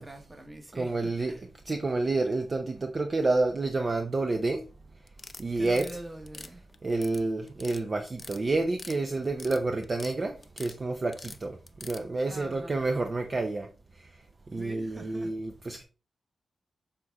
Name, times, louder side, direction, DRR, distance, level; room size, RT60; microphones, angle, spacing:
voice 1, 0.0-1.4 5.5-6.7 12.3-12.8 14.5-15.4, right 1 dB, 20° right, 1.3 m, -44 dB
voice 2, 0.8-1.3 1.7-4.6 5.4-5.8 6.8-13.7 14.5-15.8, right 3 dB, 35° right, 0.6 m, -29 dB
sound 1, 5.1-5.9 6.3-7.2 7.5-7.8 8.1-9.0 9.2-10.1 10.4-10.8 11.1-12.0, left 3 dB, 30° left, 0.6 m, -44 dB
6.7 x 3.7 x 4.0 m
wide cardioid pair, 110°, 0 cm